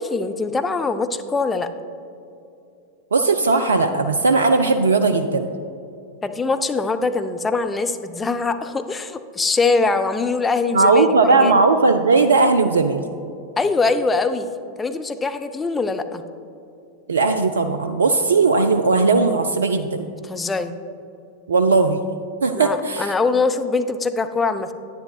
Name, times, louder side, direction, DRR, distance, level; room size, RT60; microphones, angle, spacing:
voice 1, 0.0-1.7 6.2-11.5 13.6-14.5 14.8-16.2 20.2-20.7 22.5-24.7, left 3 dB, 15° left, 8 dB, 0.4 m, -22 dB
voice 2, 3.1-5.5 10.7-13.0 17.1-20.1 21.5-22.0 22.4-23.1, right 3 dB, 70° right, 8 dB, 0.3 m, -17 dB
10.0 x 9.6 x 2.3 m, 2.7 s
figure-of-eight pair, 90°, 0 cm